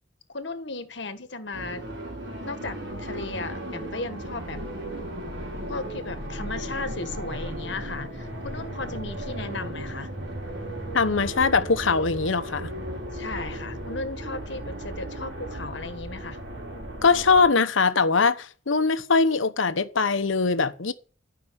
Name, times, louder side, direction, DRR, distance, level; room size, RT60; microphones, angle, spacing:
voice 1, 0.3-1.8 2.4-4.6 5.7-10.1 13.1-16.4, left 3 dB, 60° left, 1.7 m, -35 dB
sound 1, 1.5-17.5, right 1 dB, 60° right, 3.9 m, -35 dB
voice 2, 10.9-12.7 17.0-20.9, left 4 dB, 80° left, 1.0 m, -22 dB
13.5 x 5.9 x 8.6 m
head